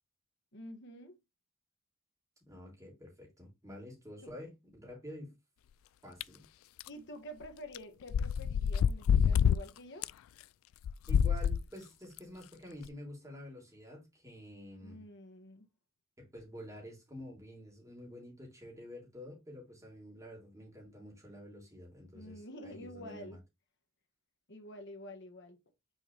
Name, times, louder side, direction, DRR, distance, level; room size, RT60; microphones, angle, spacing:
voice 1, 0.5-1.2 4.2-4.3 6.9-10.1 14.8-15.7 22.1-23.4 24.5-25.6, equal, 60° left, 1.5 m, -48 dB
voice 2, 2.5-5.3 6.0-6.4 11.1-15.0 16.2-23.4, left 1 dB, 15° right, 3.3 m, -49 dB
sound 1, 6.2-6.3 6.8-6.9 7.7-7.8 8.1-9.6 10.0-10.1 10.8-11.6 12.2-12.3 12.8-12.9, left 7 dB, 75° left, 0.3 m, -27 dB
6.3 x 4.6 x 3.2 m
head